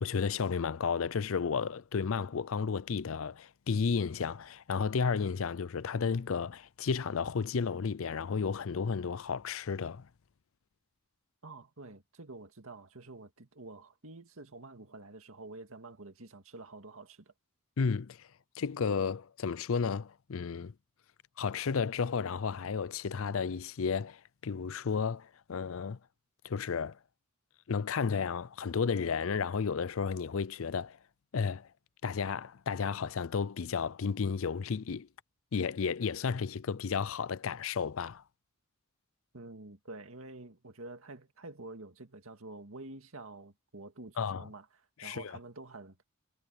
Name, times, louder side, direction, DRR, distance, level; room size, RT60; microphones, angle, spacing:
voice 1, 0.0-10.1 17.8-18.3 18.6-20.7 21.4-26.0 26.4-27.0 27.7-31.0 31.3-31.7 32.0-35.1 35.5-38.2 44.2-44.5 45.0-45.3, left 5 dB, 65° left, 0.5 m, -32 dB
voice 2, 11.4-17.3 39.3-44.7 45.0-46.0, right 2 dB, 75° right, 2.1 m, -48 dB
head